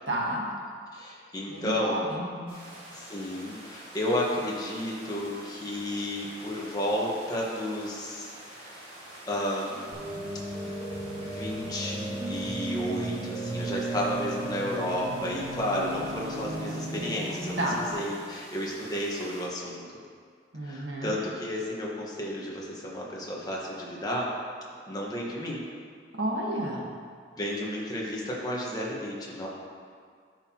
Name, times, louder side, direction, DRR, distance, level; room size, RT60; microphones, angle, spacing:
voice 1, 0.1-0.5 1.5-2.5 17.6-17.8 20.5-21.1 26.1-26.9, right 1 dB, 90° right, -2 dB, 1.5 m, -31 dB
voice 2, 0.9-2.1 2.9-9.9 11.2-17.6 17.9-20.0 20.6-24.3 24.9-25.6 27.3-29.5, left 1 dB, 20° left, -4 dB, 1.4 m, -32 dB
sound 1, 2.5-19.5, right 1 dB, 30° right, 1.9 m, -47 dB
sound 2, 9.9-17.9, right 1 dB, 10° right, 1.9 m, -35 dB
13.0 x 5.7 x 3.0 m, 2.1 s
head